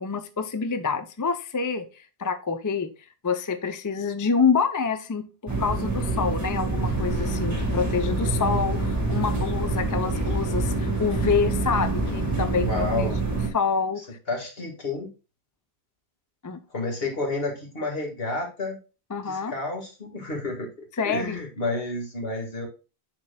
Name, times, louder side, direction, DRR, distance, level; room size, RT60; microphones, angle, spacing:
voice 1, 0.0-2.9 3.2-13.1 13.5-14.0 16.4-16.6 19.1-19.5 21.0-21.4, left 5 dB, 25° left, 9 dB, 0.4 m, -27 dB
sound 1, 5.5-13.5, right 3 dB, 15° right, 1.6 m, -26 dB
sound 2, 6.9-12.5, left 7 dB, 45° left, 2.3 m, -38 dB
voice 2, 12.6-13.2 14.3-15.1 16.7-18.8 19.3-20.7 21.0-22.7, left 3 dB, 65° left, 1 dB, 2.0 m, -30 dB
10.5 x 4.4 x 2.2 m, 0.32 s
omnidirectional pair, 1.1 m